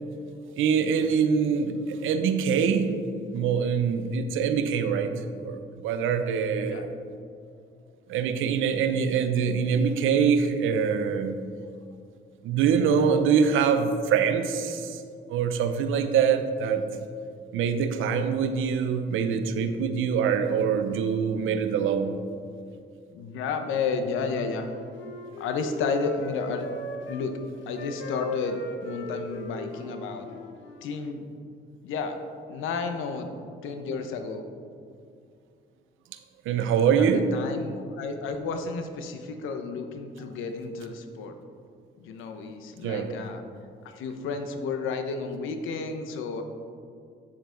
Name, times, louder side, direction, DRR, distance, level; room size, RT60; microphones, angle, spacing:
voice 1, 0.6-3.0 3.3-5.1 5.4-6.8 8.1-11.4 12.4-15.0 15.3-16.9 17.5-22.1 36.4-37.3 42.8-43.1, right 6 dB, 85° right, 8 dB, 0.7 m, -24 dB
voice 2, 23.1-24.7 25.4-26.7 27.1-27.3 27.7-30.3 30.8-31.3 31.8-32.2 32.5-33.3 33.6-34.4 37.0-37.1 37.3-41.4 42.0-43.4 43.8-46.4, left 4 dB, 90° left, 6 dB, 0.8 m, -32 dB
Wind instrument woodwind instrument, 24.1-27.3 27.7-30.9, left 1 dB, 70° left, 1.2 m, -38 dB
8.8 x 7.3 x 3.9 m, 2.3 s
cardioid pair, 90°, 20 cm